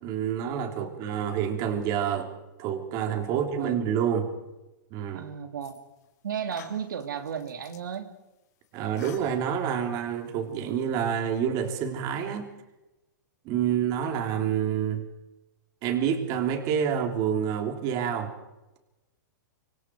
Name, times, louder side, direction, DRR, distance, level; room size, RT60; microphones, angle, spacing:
voice 1, 0.0-2.3 2.6-4.3 4.9-5.2 8.7-12.5 13.4-15.0 15.8-18.3, right 8 dB, 35° right, 6 dB, 3.4 m, -28 dB
voice 2, 3.3-3.8 5.1-5.8 6.2-8.1 13.7-14.1, right 7 dB, 85° right, 7 dB, 2.4 m, -35 dB
sound 1, 5.6-6.1 6.5-8.0 8.6-9.8, left 10 dB, 55° left, 3.7 m, -51 dB
26.5 x 23.5 x 4.7 m, 0.99 s
hypercardioid pair, 145°, 10 cm